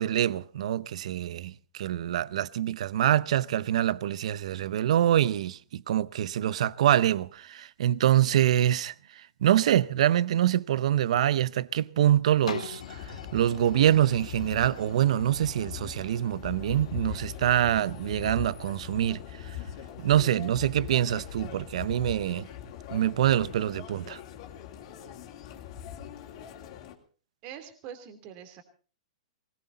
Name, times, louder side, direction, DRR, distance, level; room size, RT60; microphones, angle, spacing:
voice 1, 0.0-19.6 20.0-22.5 22.9-24.2, right 11 dB, 70° right, 0.7 m, -25 dB
sound 1, 12.5-18.2 18.8-18.9, left 6 dB, 85° left, 1.2 m, -45 dB
sound 2, 12.8-27.0, left 9 dB, 55° left, 3.2 m, -42 dB
voice 2, 27.4-28.6, right 9 dB, 40° right, 3.0 m, -44 dB
20.5 x 17.5 x 4.1 m
hypercardioid pair, 125°, 4 cm